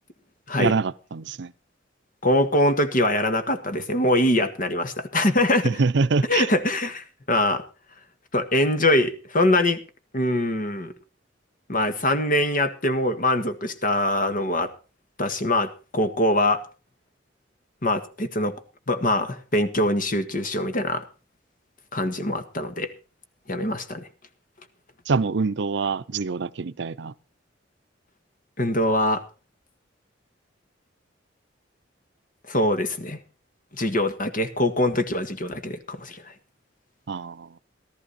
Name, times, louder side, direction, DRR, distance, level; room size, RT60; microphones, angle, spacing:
voice 1, 0.6-1.5 5.6-6.5 25.1-27.1 37.1-37.6, right 4 dB, 65° right, 0.6 m, -25 dB
voice 2, 2.2-5.7 6.3-7.6 8.3-9.8 10.1-10.9 11.7-14.7 15.2-16.6 17.8-18.5 18.9-21.0 21.9-22.9 23.5-24.1 28.6-29.2 32.5-33.2 33.7-36.3, left 1 dB, 45° left, 1.7 m, -23 dB
15.0 x 13.5 x 4.1 m
head